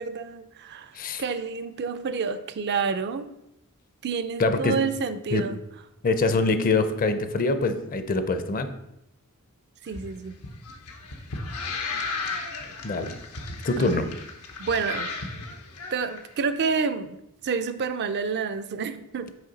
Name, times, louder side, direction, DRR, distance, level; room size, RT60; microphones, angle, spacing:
voice 1, 0.0-0.9 1.2-3.3 4.0-5.6 9.8-10.4 13.8-14.1 14.6-15.3 15.9-17.2 17.4-19.3, right 5 dB, 50° right, 11 dB, 0.4 m, -29 dB
voice 2, 4.4-4.8 5.3-5.5 6.0-8.7 12.8-13.2 13.6-14.1, left 3 dB, 40° left, 10 dB, 0.5 m, -24 dB
sound 1, 9.9-16.2, left 3 dB, 90° left, 0.9 m, -35 dB
6.5 x 5.0 x 4.0 m, 0.84 s
head